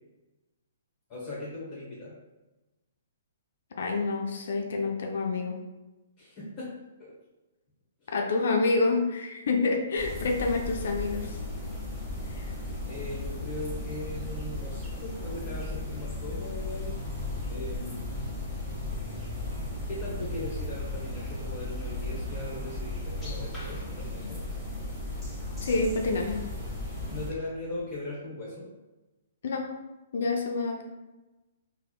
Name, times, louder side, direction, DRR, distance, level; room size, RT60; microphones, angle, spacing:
voice 1, 1.1-2.1 6.2-6.7 7.0-7.1 8.0-8.1 12.9-16.9 17.5-18.0 19.9-24.4 27.1-28.7, left 2 dB, 30° left, -6 dB, 0.8 m, -39 dB
voice 2, 3.8-5.6 8.1-11.4 12.3-12.5 25.6-26.4 29.4-29.7 30.1-30.8, left 3 dB, 60° left, 2 dB, 0.4 m, -28 dB
sound 1, 10.0-27.3, left 2 dB, 5° left, 0.8 m, -36 dB
Musical instrument, 16.3-28.0, right 3 dB, 65° right, 0.5 m, -44 dB
3.4 x 2.0 x 2.3 m, 1.1 s
figure-of-eight pair, 125°, 0 cm